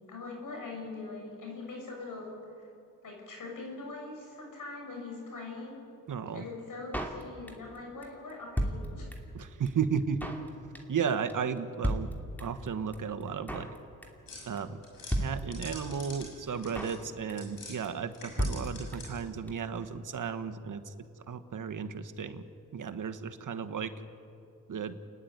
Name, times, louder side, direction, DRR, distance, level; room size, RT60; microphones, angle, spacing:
voice 1, 0.1-2.7 3.0-5.8 6.3-9.1, left 3 dB, 70° left, 1 dB, 6.6 m, -42 dB
voice 2, 6.1-6.4 9.3-10.3 10.9-12.1 12.4-13.7 14.5-14.8 15.2-20.9 21.3-22.4 22.7-23.9 24.7-25.0, right 6 dB, 65° right, 8 dB, 1.3 m, -34 dB
Drum kit, 6.9-7.8 8.0-8.1 8.3-9.4 9.7-9.8 9.9-10.5 10.7-11.0 11.3-11.4 11.6-11.7 11.8-12.7 12.9-13.0 13.2-13.8 14.0-14.3 14.6-14.7 14.8-14.9 15.1-15.9 16.2-16.3 16.5-17.0 17.3-17.6 17.8-17.9 18.1-18.2 18.4-19.2 19.5-19.6 19.7-19.8, equal, 5° left, 2.6 m, -33 dB
sound 1, 14.3-17.8 18.1-19.3, left 2 dB, 90° left, 6.6 m, -47 dB
29.5 x 10.5 x 9.5 m, 2.7 s
cardioid pair, 70°, 34 cm